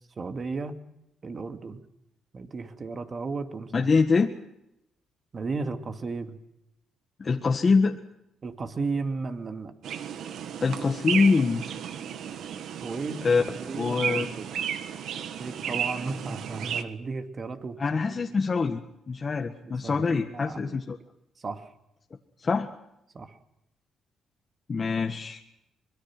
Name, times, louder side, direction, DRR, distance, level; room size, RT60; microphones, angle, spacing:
voice 1, 0.2-0.8 1.2-1.8 2.3-3.9 5.3-6.4 8.4-9.7 12.8-14.5 15.4-18.2 19.6-20.8 21.4-21.7 23.1-23.4, right 4 dB, 40° right, 7 dB, 2.5 m, -34 dB
voice 2, 3.7-4.3 7.2-8.0 10.6-11.6 13.2-13.4 13.8-14.3 17.8-18.8 19.1-21.0 22.4-22.7 24.7-25.4, left 4 dB, 35° left, 3 dB, 1.7 m, -24 dB
sound 1, 9.8-16.8, right 8 dB, 75° right, 1.6 m, -33 dB
24.5 x 22.0 x 6.2 m, 0.83 s
cardioid pair, 90°, 0 cm